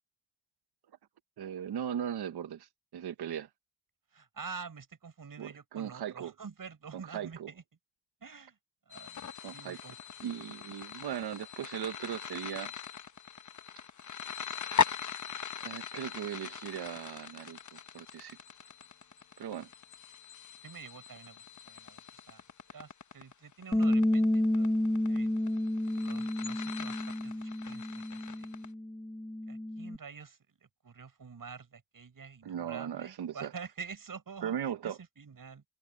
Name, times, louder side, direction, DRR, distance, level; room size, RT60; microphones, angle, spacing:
voice 1, 1.4-2.7 2.9-3.5 5.4-6.3 6.9-7.5 9.4-9.8 10.2-12.7 15.6-18.4 19.4-19.7 32.4-33.5 34.4-35.0, right 9 dB, 85° right, 1.2 m, -38 dB
voice 2, 4.1-7.6 8.2-8.6 8.9-10.0 20.6-22.4 22.7-24.7 25.1-25.4 25.9-28.5 29.5-35.6, right 5 dB, 60° right, 7.5 m, -48 dB
sound 1, 8.9-28.7, left 7 dB, 50° left, 1.2 m, -40 dB
Bass guitar, 23.7-30.0, left 1 dB, 5° left, 1.4 m, -30 dB
cardioid pair, 60°, 38 cm